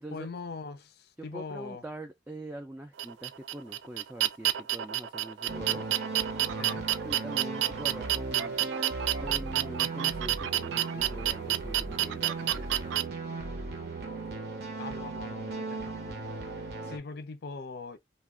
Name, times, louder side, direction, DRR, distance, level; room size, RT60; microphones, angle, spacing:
voice 1, 0.0-1.8 6.6-6.8 14.8-18.0, left 4 dB, 60° left, 0.5 m, -42 dB
voice 2, 1.2-5.9 7.0-8.5 9.2-13.2, right 1 dB, 10° right, 0.3 m, -43 dB
sound 1, 3.0-13.0, right 13 dB, 90° right, 0.4 m, -29 dB
sound 2, 5.5-17.0, right 3 dB, 60° right, 0.7 m, -37 dB
2.3 x 2.1 x 3.4 m
head